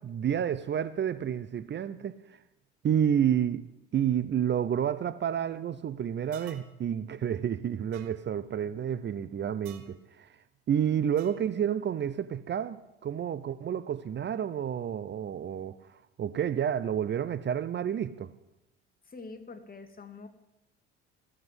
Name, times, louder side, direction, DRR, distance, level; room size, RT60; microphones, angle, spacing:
voice 1, 0.0-2.2 2.8-3.6 3.9-10.3 10.7-18.3, right 9 dB, 40° right, 0.7 m, -30 dB
sound 1, 6.3-6.7 7.9-8.1 9.7-9.9 11.2-11.5, right 11 dB, 75° right, 1.4 m, -51 dB
voice 2, 19.1-20.3, left 3 dB, 30° left, 2.0 m, -45 dB
14.5 x 7.6 x 8.0 m
hypercardioid pair, 65°, 29 cm